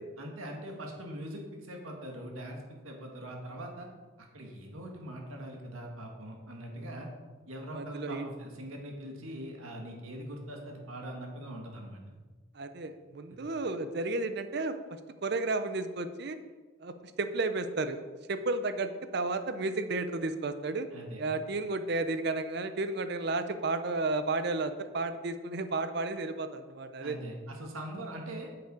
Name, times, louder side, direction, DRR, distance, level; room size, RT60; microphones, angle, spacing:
voice 1, 0.2-3.9 4.2-7.1 7.5-12.0 20.9-21.2 27.0-28.5, right 1 dB, 85° right, 1 dB, 1.8 m, -42 dB
voice 2, 7.7-8.2 12.5-16.4 16.8-18.0 18.3-20.9 21.2-27.2, right 3 dB, 50° right, 10 dB, 0.5 m, -32 dB
8.2 x 7.0 x 4.8 m, 1.4 s
head